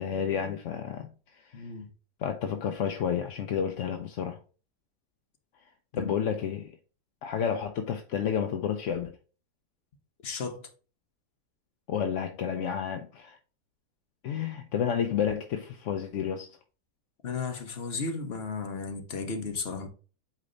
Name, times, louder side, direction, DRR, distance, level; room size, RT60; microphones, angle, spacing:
voice 1, 0.0-1.7 2.2-4.4 5.9-6.8 7.2-9.2 11.9-13.4 14.2-16.5, left 8 dB, 65° left, 0.8 m, -31 dB
voice 2, 1.5-1.9 5.9-6.1 10.2-10.7 17.2-19.9, left 4 dB, 45° left, 1.2 m, -34 dB
8.2 x 3.3 x 3.9 m
omnidirectional pair, 1.7 m